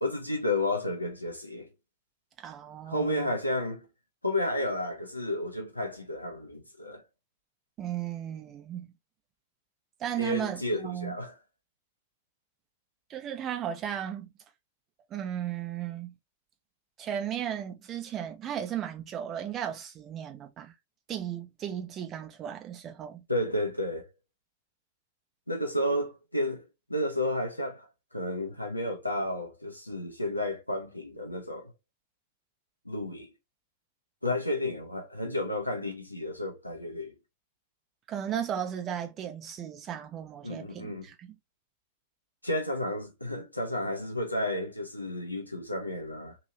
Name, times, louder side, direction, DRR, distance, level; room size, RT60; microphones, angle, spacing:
voice 1, 0.0-1.7 2.9-3.8 4.2-7.0 10.2-11.4 23.3-24.1 25.5-26.6 26.9-27.9 28.1-31.7 32.8-33.3 34.2-37.1 40.4-41.1 42.4-46.4, left 1 dB, 85° left, 0.8 m, -32 dB
voice 2, 2.4-3.3 7.8-8.9 10.0-11.2 13.1-14.3 15.1-16.1 17.0-20.7 21.1-23.2 38.1-41.3, right 10 dB, 30° right, 0.8 m, -35 dB
3.0 x 2.7 x 2.9 m
figure-of-eight pair, 90°, 0 cm